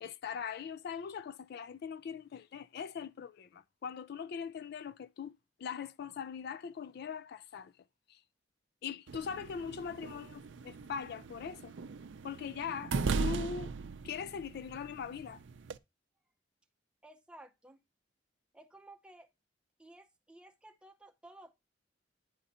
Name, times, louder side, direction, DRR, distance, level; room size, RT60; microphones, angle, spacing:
voice 1, 0.0-5.3 5.6-7.7 8.1-8.2 8.8-11.7 12.2-13.7 14.0-15.4, left 6 dB, 60° left, 0.3 m, -41 dB
sound 1, 9.1-15.8, right 4 dB, 80° right, 0.5 m, -39 dB
voice 2, 17.0-17.8 18.5-19.3 19.8-21.5, right 1 dB, 5° right, 0.7 m, -55 dB
10.5 x 3.9 x 4.2 m
head